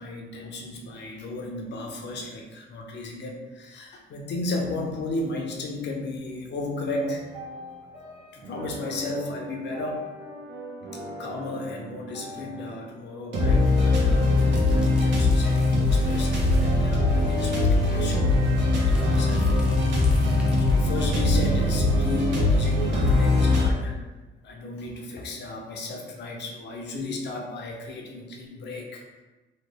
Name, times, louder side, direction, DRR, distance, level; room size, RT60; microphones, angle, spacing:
voice 1, 0.0-7.2 8.3-10.1 11.2-24.0 24.4-29.0, left 2 dB, 60° left, 0 dB, 0.7 m, -34 dB
sound 1, 7.0-8.1 8.4-12.8 13.3-23.7, left 2 dB, 65° right, 0.9 m, -23 dB
sound 2, 13.8-16.8 17.0-17.1 17.4-20.9, equal, 5° right, 0.6 m, -44 dB
3.1 x 2.1 x 3.5 m, 1.2 s
cardioid pair, 90°, 20 cm